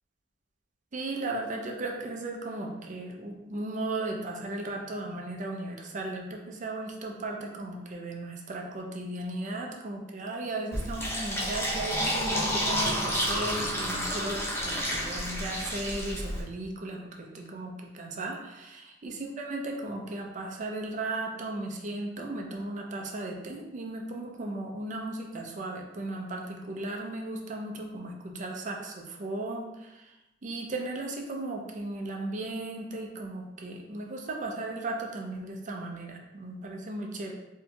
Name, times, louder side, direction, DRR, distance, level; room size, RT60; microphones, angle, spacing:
voice 1, 0.9-30.2 30.4-37.3, right 2 dB, 45° right, 1 dB, 0.5 m, -36 dB
Fill (with liquid), 10.7-16.4, equal, 15° left, 0.7 m, -30 dB
4.2 x 2.7 x 2.3 m, 0.96 s
head